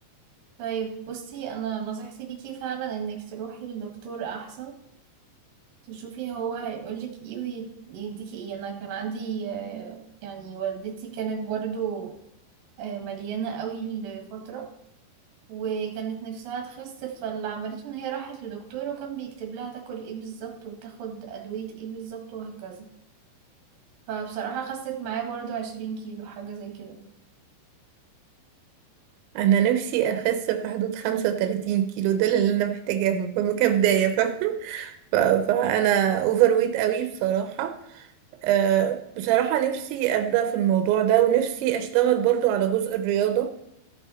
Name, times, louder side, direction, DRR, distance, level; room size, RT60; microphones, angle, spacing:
voice 1, 0.6-4.7 5.9-12.1 12.8-14.7 15.5-22.9 24.1-27.0, right 7 dB, 60° right, 1 dB, 3.0 m, -34 dB
voice 2, 29.4-38.0 38.4-43.5, right 10 dB, 90° right, 8 dB, 3.1 m, -23 dB
14.5 x 5.5 x 4.2 m, 0.80 s
omnidirectional pair, 5.1 m